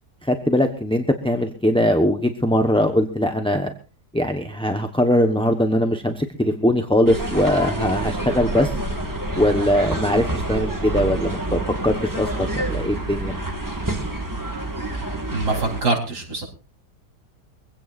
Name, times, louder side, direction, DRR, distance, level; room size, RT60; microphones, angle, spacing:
voice 1, 0.2-3.7 4.1-8.8 9.3-13.3, left 1 dB, 5° left, 5 dB, 0.9 m, -21 dB
sound 1, 7.1-15.8, right 2 dB, 10° right, 2.0 m, -27 dB
voice 2, 15.3-16.5, right 3 dB, 70° right, 1 dB, 4.5 m, -24 dB
23.5 x 16.5 x 2.6 m, 0.33 s
omnidirectional pair, 1.8 m